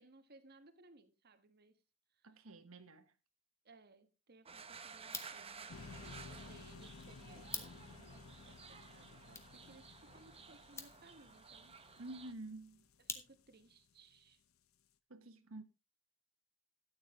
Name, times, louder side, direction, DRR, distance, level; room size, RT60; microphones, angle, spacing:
voice 1, 0.0-1.8 2.1-2.4 3.6-12.0 13.1-14.4, right 3 dB, 50° right, 1.3 m, -63 dB
voice 2, 2.2-3.1 12.0-12.8 15.1-15.6, right 2 dB, 80° right, 1.3 m, -50 dB
sound 1, 4.5-12.3, right 5 dB, 30° right, 1.0 m, -55 dB
sound 2, 5.0-13.7, left 4 dB, 15° left, 1.3 m, -52 dB
sound 3, 5.7-13.8, left 4 dB, 80° left, 0.8 m, -56 dB
13.0 x 9.6 x 3.6 m
head